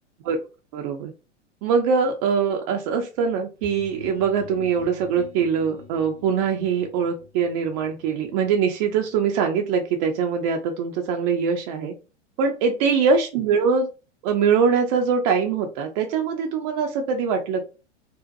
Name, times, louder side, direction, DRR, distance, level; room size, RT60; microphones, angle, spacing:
voice 1, 0.7-1.1 1.6-11.9 12.4-13.9 14.2-17.6, right 6 dB, 30° right, 2 dB, 0.4 m, -23 dB
sound 1, 3.6-9.2, left 3 dB, 75° right, 0.8 m, -46 dB
2.6 x 2.1 x 2.4 m, 0.31 s
figure-of-eight pair, 95°, 36 cm